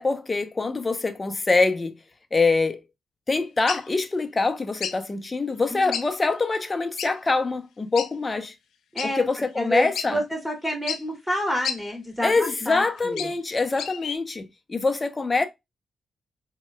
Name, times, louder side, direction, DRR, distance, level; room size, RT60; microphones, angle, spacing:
voice 1, 0.0-1.9 2.3-2.8 3.3-8.5 9.0-10.2 12.2-15.5, left 3 dB, 35° left, 0.7 m, -24 dB
sound 1, 3.7-3.9 4.8-5.0 5.9-6.1 6.4-6.5 7.0-7.1 8.0-8.1 9.0-9.1 9.6-9.7 9.9-10.1 10.9-11.0 11.6-11.8 12.7-13.4 13.7-14.2, left 8 dB, 80° left, 0.4 m, -30 dB
voice 2, 5.7-6.1 8.9-9.2 9.6-13.3, equal, ahead, 2.3 m, -29 dB
4.2 x 2.8 x 2.2 m
supercardioid pair, 55°, 0 cm